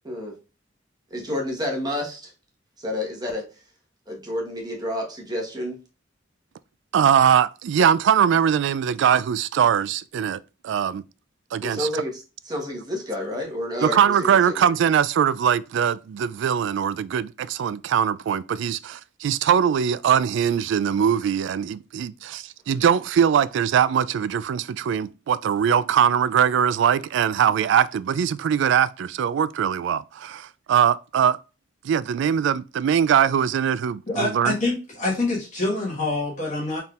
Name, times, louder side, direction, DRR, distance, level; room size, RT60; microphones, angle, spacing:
voice 1, 0.0-0.3 1.1-2.3 2.8-3.5 4.1-5.8 11.6-14.6, left 1 dB, 20° right, 1.2 m, -30 dB
voice 2, 6.9-11.0 11.5-11.9 13.8-31.4 31.8-34.6, right 8 dB, 65° right, 0.3 m, -21 dB
voice 3, 34.1-36.8, left 2 dB, 40° left, 1.5 m, -26 dB
4.3 x 3.6 x 2.4 m
head